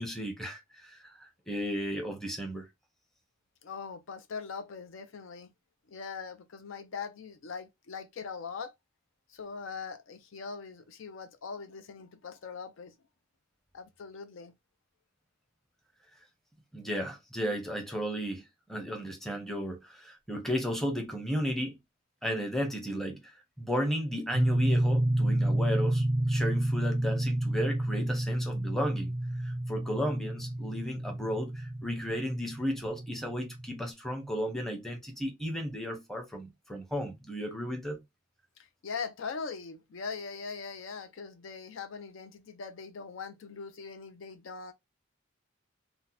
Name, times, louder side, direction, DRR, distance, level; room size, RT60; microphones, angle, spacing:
voice 1, 0.0-2.7 16.7-18.4 18.7-21.8 22.2-23.2 23.6-29.1 29.4-38.0, equal, ahead, 0.7 m, -34 dB
voice 2, 3.6-5.5 5.9-8.7 9.3-12.9 13.7-14.5 38.8-44.7, left 5 dB, 65° left, 0.4 m, -41 dB
sound 1, 24.3-33.9, right 1 dB, 30° right, 0.4 m, -30 dB
2.7 x 2.1 x 3.9 m
head